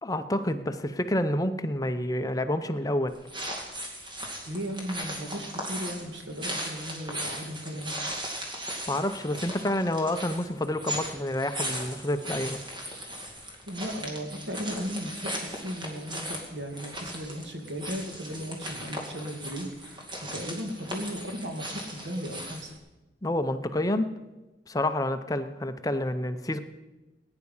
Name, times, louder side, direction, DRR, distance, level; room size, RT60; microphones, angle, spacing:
voice 1, 0.0-3.1 8.9-12.6 23.2-24.1 24.7-26.6, left 1 dB, 20° left, 9 dB, 0.6 m, -28 dB
sound 1, 3.1-22.8, equal, 25° right, 2.4 m, -38 dB
voice 2, 4.4-8.2 13.7-22.8, equal, 80° right, 4 dB, 2.2 m, -36 dB
19.5 x 9.7 x 5.5 m, 1.1 s
head